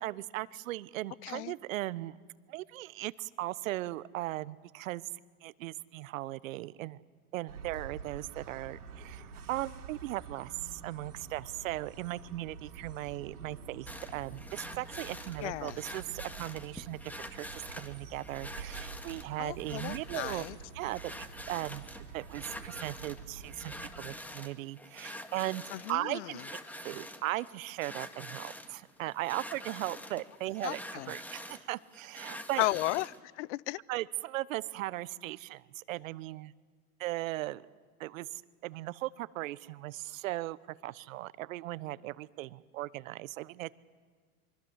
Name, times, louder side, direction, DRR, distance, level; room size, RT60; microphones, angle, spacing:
voice 1, 0.0-2.2 2.5-5.0 5.4-7.0 7.3-20.4 20.7-21.9 22.1-25.6 25.9-26.4 26.8-30.8 31.1-32.7 33.9-36.5 37.0-37.6 38.0-43.7, right 17 dB, 60° right, 19 dB, 1.0 m, -38 dB
voice 2, 1.2-1.5 15.4-15.8 19.4-20.6 25.7-26.4 30.6-31.1 32.6-33.8, left 19 dB, 55° left, 23 dB, 0.7 m, -35 dB
sound 1, 7.5-24.1, right 5 dB, 90° right, 3.4 m, -48 dB
sound 2, 13.9-33.2, left 1 dB, 5° left, 1.8 m, -46 dB
25.0 x 24.0 x 8.1 m, 1.5 s
hypercardioid pair, 110°, 44 cm